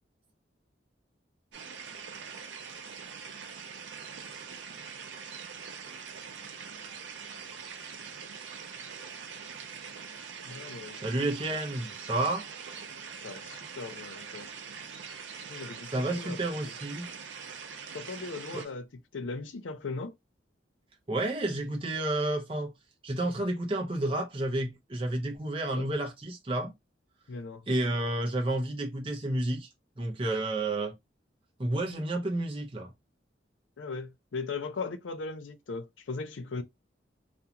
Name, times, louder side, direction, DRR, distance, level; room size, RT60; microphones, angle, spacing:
sound 1, 1.5-18.7, right 6 dB, 75° right, 0.5 m, -43 dB
voice 1, 10.4-11.0 13.2-14.5 15.5-15.9 16.2-16.4 17.9-18.9 19.1-20.1 25.7-25.9 27.3-27.6 33.8-36.6, left 4 dB, 80° left, 0.5 m, -38 dB
voice 2, 10.9-12.5 15.8-17.1 18.5-18.6 21.1-22.7 23.0-26.7 27.7-29.7 30.0-30.9 31.6-32.9, right 1 dB, 25° right, 0.5 m, -30 dB
2.5 x 2.3 x 2.8 m
head